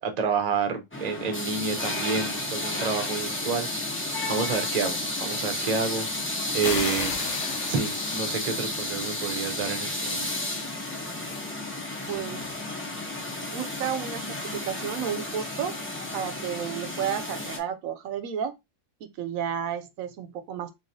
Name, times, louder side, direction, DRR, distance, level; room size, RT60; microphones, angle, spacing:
voice 1, 0.0-4.0 4.3-6.1 6.5-7.1 7.7-10.3, right 5 dB, 40° right, 0.7 m, -29 dB
sound 1, 0.9-17.6, left 1 dB, 15° left, 0.6 m, -32 dB
sound 2, 6.6-9.2, left 7 dB, 65° left, 0.9 m, -35 dB
voice 2, 12.1-12.4 13.5-15.8 16.1-18.5 19.2-20.7, right 8 dB, 85° right, 1.0 m, -32 dB
4.0 x 3.1 x 2.7 m
omnidirectional pair, 1.4 m